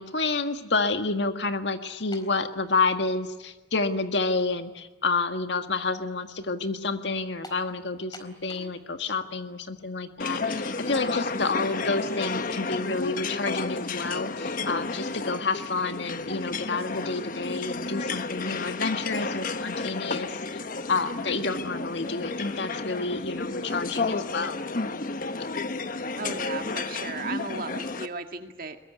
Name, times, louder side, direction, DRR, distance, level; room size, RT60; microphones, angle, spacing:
voice 1, 0.0-20.4 20.9-24.6, left 3 dB, 75° left, 7 dB, 1.8 m, -29 dB
sound 1, 2.1-2.4 3.3-3.4 7.4-7.7 8.1-8.8 9.1-9.2 10.4-10.6, left 2 dB, 25° left, 4.1 m, -45 dB
sound 2, 10.2-28.1, left 3 dB, 50° left, 1.2 m, -32 dB
voice 2, 26.2-28.8, right 4 dB, 55° right, 6 dB, 2.1 m, -36 dB
22.5 x 22.0 x 9.6 m, 1.2 s
head